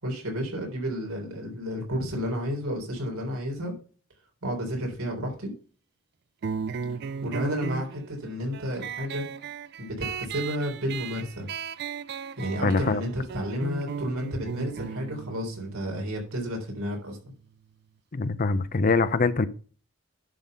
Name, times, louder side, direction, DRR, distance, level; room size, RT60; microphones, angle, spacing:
voice 1, 0.0-3.7 4.4-5.5 7.2-9.3 9.8-11.5 12.4-17.2, equal, 80° right, 3.7 m, -31 dB
sound 1, 6.4-17.5, right 6 dB, 50° right, 0.4 m, -37 dB
voice 2, 12.6-13.0 18.1-19.5, left 3 dB, 40° left, 0.5 m, -23 dB
11.0 x 4.0 x 6.7 m
head